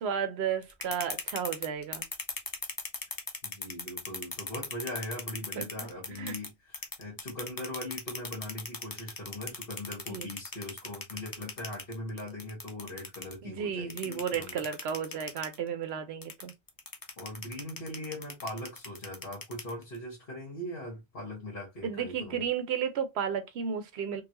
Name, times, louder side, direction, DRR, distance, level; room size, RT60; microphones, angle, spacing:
voice 1, 0.0-2.1 5.6-5.7 6.2-6.3 10.1-10.3 13.4-16.5 21.8-24.2, right 7 dB, 70° right, 0.9 m, -33 dB
sound 1, 0.6-6.5 6.7-13.3 13.9-15.6 16.2-20.0, left 3 dB, 25° left, 0.5 m, -38 dB
voice 2, 3.4-14.6 17.2-22.4, left 1 dB, 55° left, 1.4 m, -40 dB
3.9 x 2.1 x 2.8 m
omnidirectional pair, 1.1 m